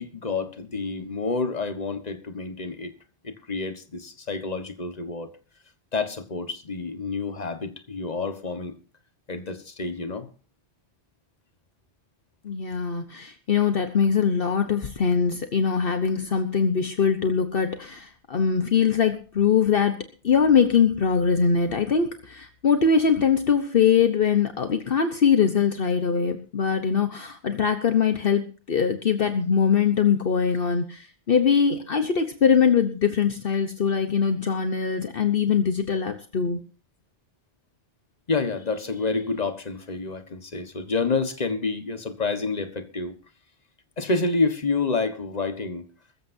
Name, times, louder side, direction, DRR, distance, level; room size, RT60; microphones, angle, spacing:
voice 1, 0.0-2.9 3.2-5.3 5.9-8.7 9.3-10.3 38.3-43.2 44.0-45.9, left 3 dB, 40° left, 1.5 m, -28 dB
voice 2, 12.4-20.0 20.2-36.6, left 6 dB, 60° left, 1.2 m, -22 dB
22.0 x 14.0 x 2.7 m
omnidirectional pair, 1.1 m